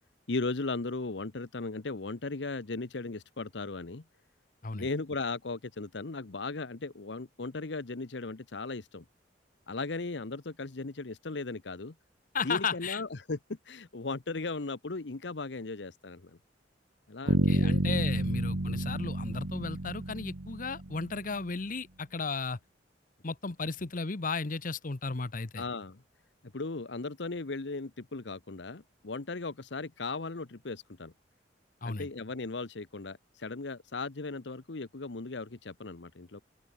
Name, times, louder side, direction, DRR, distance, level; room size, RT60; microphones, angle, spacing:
voice 1, 0.3-4.0 4.7-9.0 9.7-11.9 12.4-13.4 13.7-16.4 17.1-17.8 18.6-18.9 25.6-26.0 26.5-31.1 31.8-36.4, left 3 dB, 70° left, 1.0 m, -37 dB
voice 2, 12.3-13.0 17.2-22.6 23.2-25.6 31.8-32.1, left 4 dB, 45° left, 0.9 m, -34 dB
Bass guitar, 17.3-21.2, right 1 dB, 75° right, 1.4 m, -30 dB
open air
head